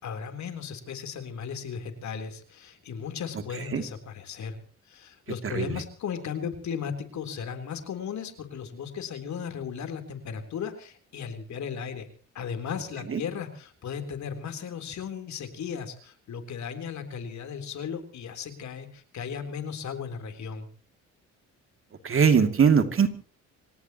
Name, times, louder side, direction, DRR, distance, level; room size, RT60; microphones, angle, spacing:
voice 1, 0.0-4.6 4.9-12.1 12.3-20.7, left 7 dB, 65° left, 7 dB, 3.8 m, -36 dB
voice 2, 5.4-5.7 13.1-13.2 22.0-23.1, right 6 dB, 45° right, 7 dB, 2.7 m, -21 dB
26.5 x 18.0 x 3.0 m, 0.41 s
cardioid pair, 90°, 30 cm